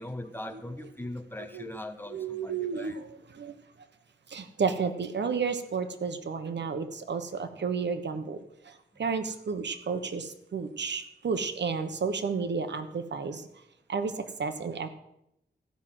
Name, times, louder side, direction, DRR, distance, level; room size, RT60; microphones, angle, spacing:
voice 1, 0.0-3.0, left 1 dB, 10° left, 8 dB, 1.2 m, -40 dB
voice 2, 2.1-3.5 4.3-8.4 8.6-13.5 13.9-14.1 14.4-14.9, right 5 dB, 85° right, 9 dB, 1.1 m, -32 dB
15.0 x 6.2 x 7.8 m, 0.80 s
wide cardioid pair, 85°, 18 cm